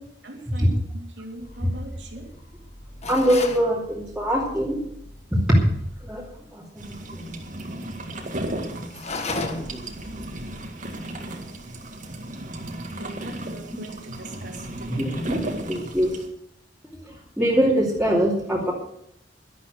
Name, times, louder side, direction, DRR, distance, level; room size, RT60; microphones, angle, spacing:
voice 1, 0.2-2.3 13.0-15.1, right 2 dB, 80° right, 2 dB, 3.0 m, -41 dB
sound 1, 1.4-7.4, equal, 60° left, 3.9 m, -46 dB
sound 2, 3.0-3.7 8.9-9.8, left 3 dB, 40° left, 1.5 m, -31 dB
voice 2, 3.1-4.8 5.3-5.6 6.0-7.3 7.7-8.1 8.9-9.0 9.5-9.9 14.9-15.4 15.7-16.2 17.0-18.7, equal, 5° right, -8 dB, 2.7 m, -24 dB
sound 3, 6.8-16.3, right 1 dB, 45° right, 2.0 m, -35 dB
12.0 x 12.0 x 6.6 m, 0.73 s
head